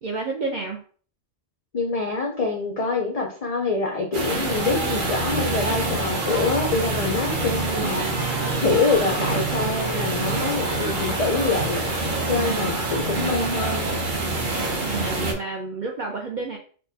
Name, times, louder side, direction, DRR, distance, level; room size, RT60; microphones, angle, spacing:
voice 1, 0.0-0.8 7.7-8.1 12.4-12.7 14.8-16.6, right 4 dB, 70° right, 1 dB, 0.4 m, -30 dB
voice 2, 1.7-8.1 8.6-11.8 12.3-13.9, left 4 dB, 70° left, 1 dB, 0.3 m, -25 dB
sound 1, 4.1-15.3, right 2 dB, 50° right, 0.8 m, -26 dB
sound 2, 6.9-12.8, left 6 dB, 90° left, 1.0 m, -43 dB
4.4 x 2.2 x 2.6 m, 0.44 s
omnidirectional pair, 1.3 m